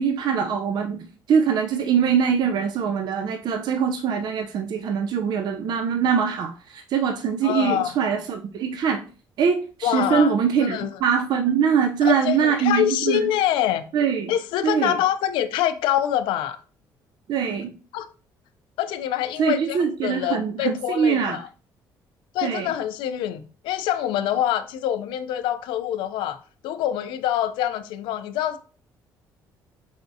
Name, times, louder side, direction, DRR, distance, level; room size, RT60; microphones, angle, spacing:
voice 1, 0.0-9.0 9.4-13.3 13.9-14.3 14.6-15.0 17.3-17.7 19.4-21.4 22.4-22.7, right 7 dB, 60° right, 0.5 m, -23 dB
voice 2, 7.4-7.9 9.8-10.3 10.6-10.9 12.0-13.9 14.3-16.6 17.9-18.1 18.8-21.5 22.3-26.4 26.6-28.6, left 11 dB, 85° left, 0.4 m, -25 dB
4.8 x 3.5 x 2.6 m
cardioid pair, 85°, 8 cm